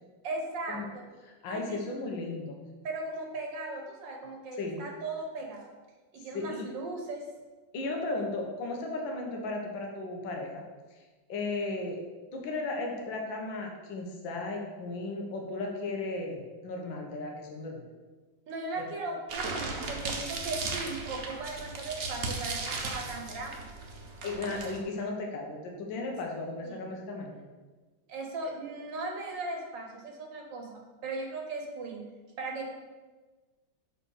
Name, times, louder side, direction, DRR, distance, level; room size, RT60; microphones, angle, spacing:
voice 1, 0.2-1.0 1.5-1.8 2.8-5.7 6.1-7.3 18.5-23.7 26.6-26.8 28.1-32.1 32.4-32.7, right 2 dB, 70° right, 2 dB, 1.7 m, -38 dB
voice 2, 1.3-2.6 4.6-4.8 6.3-6.7 7.7-10.6 11.0-11.1 11.3-12.0 12.3-17.8 24.2-27.4, left 2 dB, 75° left, 1 dB, 1.8 m, -35 dB
sound 1, 19.3-24.8, right 3 dB, 55° right, 1.3 m, -36 dB
6.1 x 5.5 x 6.2 m, 1.3 s
omnidirectional pair, 2.1 m